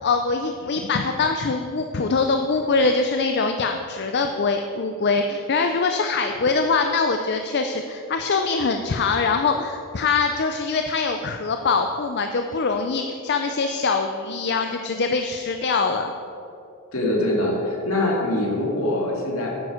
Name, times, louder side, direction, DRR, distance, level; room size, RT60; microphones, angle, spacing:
voice 1, 0.0-16.1, left 4 dB, 50° left, 5 dB, 0.5 m, -23 dB
voice 2, 16.9-19.6, left 1 dB, 65° left, -2 dB, 2.4 m, -23 dB
9.5 x 9.5 x 5.0 m, 2.6 s
head